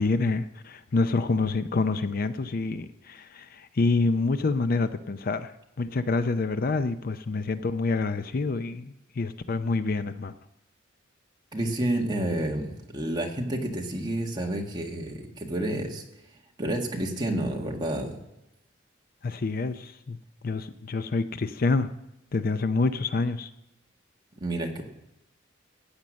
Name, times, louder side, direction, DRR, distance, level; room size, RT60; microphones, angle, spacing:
voice 1, 0.0-10.3 19.2-20.2 20.4-21.9 22.3-23.5, left 3 dB, 45° left, 11 dB, 0.5 m, -27 dB
voice 2, 11.5-16.0 16.6-18.2 24.4-24.8, right 1 dB, 20° right, 1 dB, 1.7 m, -29 dB
15.0 x 8.8 x 6.4 m, 0.88 s
head